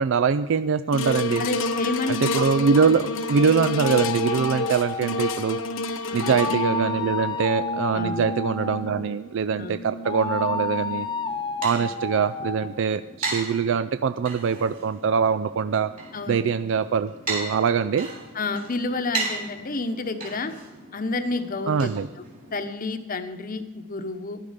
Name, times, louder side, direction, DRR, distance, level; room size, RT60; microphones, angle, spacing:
voice 1, 0.0-1.4 2.1-5.6 6.1-11.1 11.6-15.9 16.3-18.1 21.7-22.1, right 6 dB, 65° right, 11 dB, 0.4 m, -23 dB
sound 1, 0.9-11.3 11.9-12.0, left 2 dB, 70° left, 0.8 m, -30 dB
voice 2, 1.4-2.2 6.1-6.4 7.9-8.2 9.6-9.8 11.7-11.9 16.1-16.4 18.3-20.5 20.9-21.9 22.5-24.4, left 3 dB, 45° left, 9 dB, 1.0 m, -30 dB
sound 2, 3.8-5.6 6.2-9.1 10.0-12.7, left 4 dB, 20° left, 0.7 m, -31 dB
sound 3, 11.0-22.7, right 3 dB, 45° right, 3.4 m, -37 dB
15.0 x 11.0 x 5.1 m, 1.2 s
head